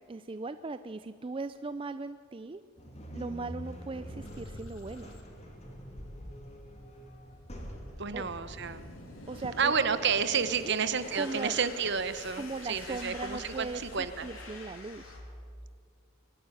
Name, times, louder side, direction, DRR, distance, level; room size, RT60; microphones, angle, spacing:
voice 1, 0.1-2.6 3.1-5.1 8.1-8.2 9.3-9.7 10.6-10.7 11.1-11.6 12.4-15.2, right 3 dB, 25° right, 12 dB, 0.4 m, -38 dB
sound 1, 2.8-13.9, equal, 30° left, 3.3 m, -47 dB
sound 2, 4.2-15.2, left 2 dB, 80° left, 3.8 m, -48 dB
voice 2, 8.0-8.8 9.6-14.2, right 6 dB, 55° right, 12 dB, 1.0 m, -30 dB
23.5 x 12.5 x 9.1 m, 2.3 s
head